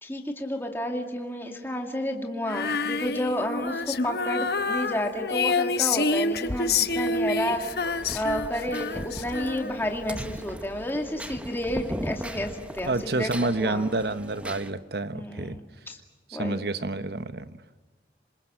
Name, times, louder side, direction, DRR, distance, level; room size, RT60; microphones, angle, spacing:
voice 1, 0.0-7.6 8.1-14.0 15.1-16.0 16.3-16.7, left 1 dB, 10° left, 2 dB, 2.3 m, -31 dB
Female singing, 2.5-9.9, left 4 dB, 65° left, 1.0 m, -28 dB
sound 1, 6.4-14.7, equal, 5° right, 0.8 m, -39 dB
voice 2, 12.8-15.6 16.3-17.6, right 2 dB, 65° right, 12 dB, 1.1 m, -29 dB
27.0 x 26.5 x 7.7 m, 1.2 s
head